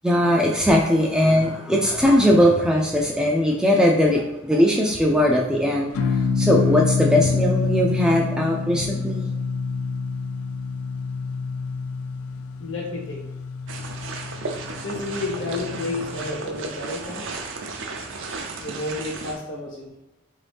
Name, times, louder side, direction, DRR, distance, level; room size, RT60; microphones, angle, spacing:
voice 1, 0.0-5.9 6.4-9.3, equal, 5° right, -2 dB, 0.3 m, -19 dB
sound 1, 5.9-16.5, left 4 dB, 85° left, 0.3 m, -27 dB
voice 2, 12.6-13.2 14.8-17.3 18.6-20.0, left 2 dB, 65° left, -1 dB, 1.1 m, -31 dB
sound 2, 13.7-19.4, right 3 dB, 65° right, 0.5 m, -34 dB
3.8 x 2.7 x 3.4 m, 0.95 s
head